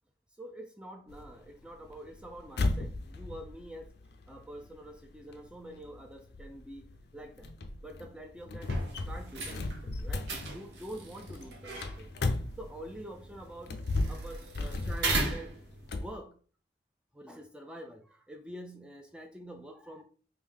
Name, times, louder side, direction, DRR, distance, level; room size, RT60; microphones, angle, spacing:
voice 1, 0.4-4.0 4.3-7.6 7.8-8.8 9.0-12.1 12.6-16.4 17.1-20.0, equal, 5° right, 4 dB, 0.4 m, -46 dB
sound 1, 1.1-13.1 13.6-16.2, left 2 dB, 60° left, 0.4 m, -36 dB
sound 2, 8.6-16.1, right 2 dB, 75° right, 0.9 m, -38 dB
3.4 x 2.6 x 3.6 m, 0.40 s
head